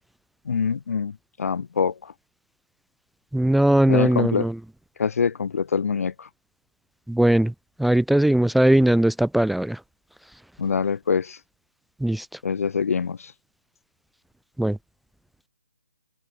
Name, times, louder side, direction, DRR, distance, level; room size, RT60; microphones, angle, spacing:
voice 1, 0.4-2.1 3.9-4.5 5.0-6.3 10.6-11.4 12.4-13.3, left 6 dB, 55° left, 1.5 m, -25 dB
voice 2, 3.3-4.5 7.1-7.5 7.8-9.8 12.0-12.3 14.6-14.8, right 1 dB, ahead, 0.6 m, -19 dB
open air
hypercardioid pair, 165°, 9 cm